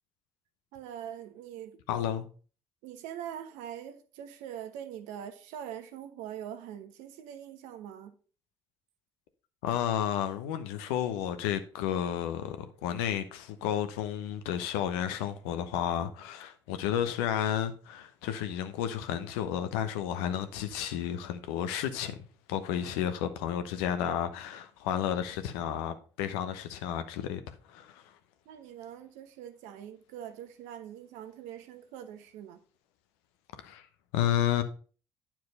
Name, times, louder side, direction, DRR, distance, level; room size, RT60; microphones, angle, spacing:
voice 1, 0.7-1.8 2.8-8.1 28.4-32.6, right 10 dB, 75° right, 1.1 m, -43 dB
voice 2, 1.9-2.3 9.6-22.2 22.5-28.1 33.6-33.9 34.1-34.6, left 10 dB, 75° left, 0.9 m, -32 dB
9.6 x 4.6 x 5.4 m
hypercardioid pair, 50°, 13 cm